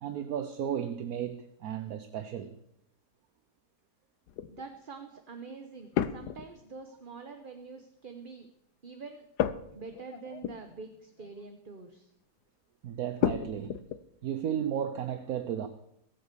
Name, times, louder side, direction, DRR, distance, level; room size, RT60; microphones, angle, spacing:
voice 1, 0.0-2.6 12.8-13.9 14.2-15.7, right 9 dB, 65° right, 10 dB, 1.3 m, -34 dB
sound 1, 4.3-4.6 5.9-6.8 9.4-10.9 11.2-11.4 13.2-14.0, left 10 dB, 75° left, 1.4 m, -32 dB
voice 2, 4.5-8.5 8.8-12.1, right 4 dB, 35° right, 6 dB, 1.1 m, -46 dB
22.0 x 8.1 x 6.9 m, 0.80 s
omnidirectional pair, 1.8 m